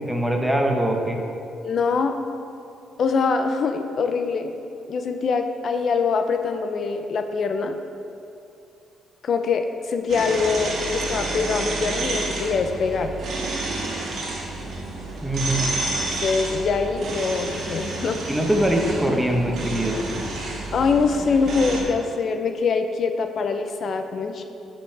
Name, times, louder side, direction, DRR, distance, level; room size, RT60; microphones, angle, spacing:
voice 1, 0.1-1.2 15.2-15.6 18.3-20.0, right 1 dB, 5° right, 1 dB, 1.1 m, -22 dB
voice 2, 1.6-2.2 3.0-4.5 4.9-7.8 9.2-13.1 16.0-18.2 20.7-24.4, left 5 dB, 55° left, 7 dB, 0.6 m, -24 dB
sound 1, 10.1-21.8, right 2 dB, 60° right, 1.7 m, -30 dB
12.5 x 6.0 x 3.4 m, 2.6 s
cardioid pair, 90°, 0 cm